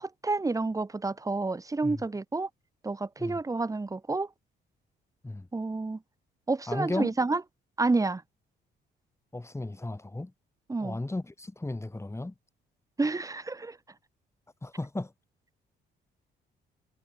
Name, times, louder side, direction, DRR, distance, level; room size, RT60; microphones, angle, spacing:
voice 1, 0.0-2.5 2.8-4.3 5.5-6.0 6.5-7.4 7.8-8.2 10.7-11.0 13.0-13.8, right 3 dB, 15° right, 0.9 m, -29 dB
voice 2, 6.7-7.2 9.3-10.3 10.8-12.3 14.6-15.1, left 2 dB, 15° left, 3.9 m, -34 dB
cardioid pair, 90°, 20 cm